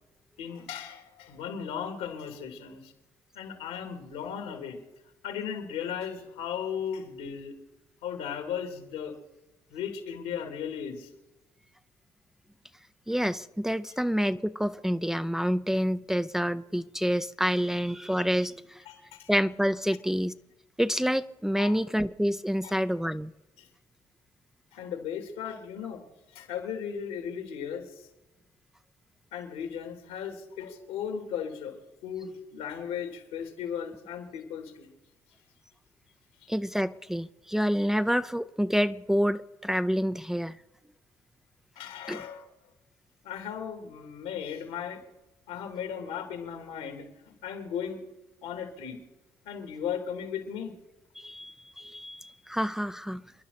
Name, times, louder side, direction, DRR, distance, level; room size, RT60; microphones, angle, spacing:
voice 1, 0.4-2.9 3.3-4.8 5.2-7.6 8.0-9.1 9.7-11.1 18.8-19.3 21.6-21.8 22.6-22.8 23.6-23.7 24.7-26.0 26.3-27.9 29.3-31.8 32.0-34.9 41.7-42.4 43.2-45.0 45.5-47.1 47.4-48.0 48.4-49.0 49.4-50.7, left 8 dB, 85° left, 3.2 m, -36 dB
voice 2, 13.1-18.8 19.3-20.4 20.8-23.3 36.5-40.6 42.1-42.2 51.2-53.2, equal, 5° right, 0.6 m, -28 dB
29.5 x 11.0 x 4.2 m
supercardioid pair, 60°, 11 cm